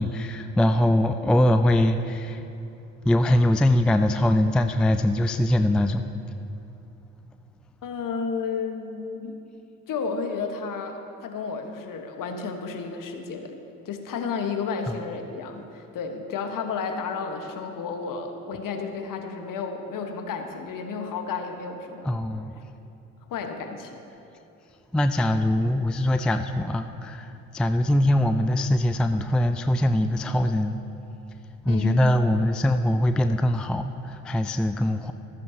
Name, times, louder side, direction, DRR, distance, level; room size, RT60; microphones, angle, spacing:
voice 1, 0.0-2.5 3.0-6.1 14.9-15.0 22.0-22.6 24.9-30.8 31.6-35.1, left 1 dB, ahead, 8 dB, 0.3 m, -22 dB
voice 2, 7.8-9.4 9.9-13.6 13.8-22.1 23.3-24.0 31.6-32.0, left 5 dB, 50° left, 5 dB, 1.4 m, -32 dB
14.0 x 13.5 x 2.9 m, 2.9 s
hypercardioid pair, 55°, 41 cm